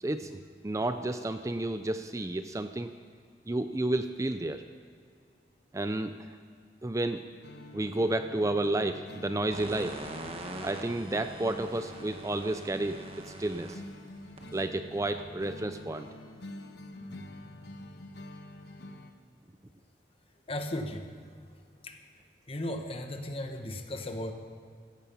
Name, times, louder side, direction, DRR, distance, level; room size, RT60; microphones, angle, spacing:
voice 1, 0.0-2.9 3.5-4.6 5.7-6.1 6.8-7.3 7.7-10.0 10.6-13.8 14.5-16.1, right 2 dB, 20° right, 9 dB, 0.5 m, -31 dB
sound 1, 7.4-19.1, left 1 dB, 70° left, 1.3 m, -47 dB
sound 2, 9.5-15.6, right 1 dB, 35° right, 1.4 m, -44 dB
voice 2, 20.5-21.0 21.8-22.0 22.5-24.3, left 1 dB, 35° left, 5 dB, 1.4 m, -35 dB
16.5 x 14.5 x 5.6 m, 2.1 s
head